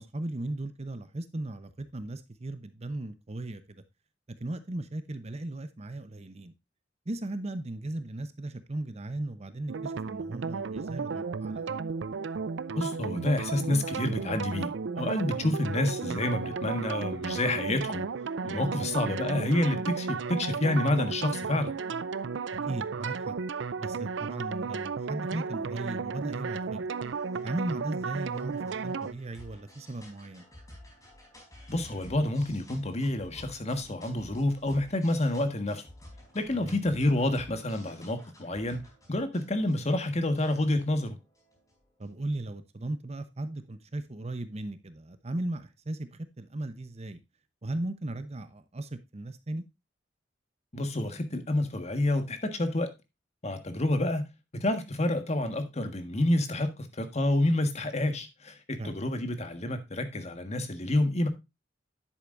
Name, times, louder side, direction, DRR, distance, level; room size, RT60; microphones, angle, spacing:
voice 1, 0.0-3.8 4.4-6.5 7.1-11.7 18.8-18.9 22.7-23.3 23.8-26.9 27.4-30.4 36.5-36.8 42.0-47.2 47.6-49.6 58.8-59.0, right 1 dB, 35° right, 0.8 m, -37 dB
sound 1, 9.7-29.1, right 5 dB, 80° right, 0.5 m, -34 dB
voice 2, 12.8-14.7 15.0-18.0 18.4-21.7 31.7-35.8 36.3-38.8 39.1-41.1 50.7-52.9 53.4-54.3 54.5-61.3, left 1 dB, 35° left, 1.5 m, -28 dB
sound 2, 26.7-42.2, left 1 dB, 20° left, 4.3 m, -53 dB
10.0 x 8.1 x 2.5 m
head